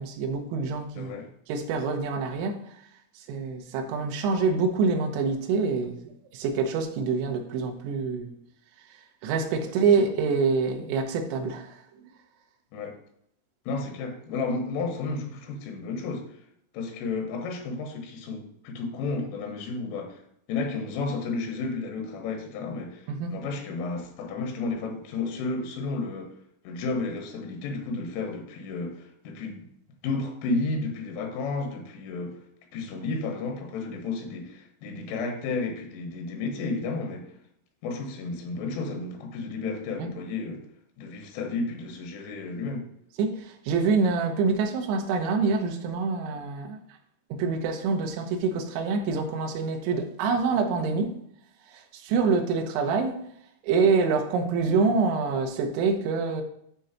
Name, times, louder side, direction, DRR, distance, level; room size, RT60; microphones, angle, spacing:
voice 1, 0.0-1.1 1.5-2.8 3.2-8.3 8.9-11.8 23.1-23.3 40.0-40.1 43.2-46.8 47.3-51.1 51.7-53.2 53.6-56.4, right 4 dB, 75° right, 3.2 m, -26 dB
voice 2, 1.0-1.3 10.0-10.1 12.7-13.0 13.7-16.3 16.7-20.2 20.5-26.4 26.7-29.7 30.0-32.4 32.7-37.3 37.8-40.7 41.0-42.9, left 3 dB, 85° left, 3.7 m, -32 dB
8.0 x 3.8 x 5.7 m
omnidirectional pair, 5.6 m